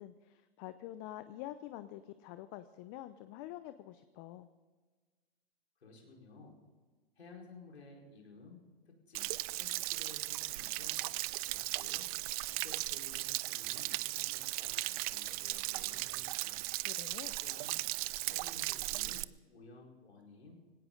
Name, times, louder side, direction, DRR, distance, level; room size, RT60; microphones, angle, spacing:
voice 1, 0.0-4.5 16.7-17.3, left 14 dB, 35° left, 12 dB, 0.7 m, -47 dB
voice 2, 5.8-6.6 7.2-11.0 11.5-12.1 12.4-16.6 17.4-17.8 18.2-20.6, left 3 dB, 90° left, 0 dB, 4.7 m, -55 dB
Stream / Splash splatter / Trickle dribble, 9.1-19.2, right 20 dB, 35° right, 0.4 m, -37 dB
18.5 x 17.5 x 3.9 m, 1.4 s
hypercardioid pair, 125°, 31 cm